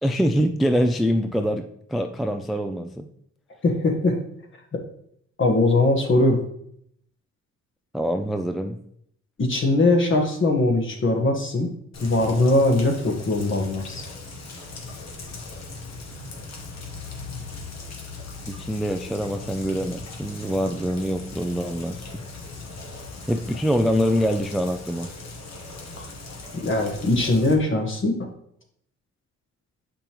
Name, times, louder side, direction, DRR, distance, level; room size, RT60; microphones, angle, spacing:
voice 1, 0.0-3.1 7.9-8.8 18.5-22.1 23.3-25.1, equal, ahead, 5 dB, 0.3 m, -24 dB
voice 2, 3.6-4.2 5.4-6.4 9.4-11.7 12.0-14.0 26.0-26.1 26.6-28.3, left 2 dB, 40° left, 3 dB, 1.4 m, -21 dB
Rain, 11.9-27.5, left 3 dB, 60° left, 1.3 m, -39 dB
6.7 x 5.2 x 3.0 m, 0.69 s
cardioid pair, 90°, 30 cm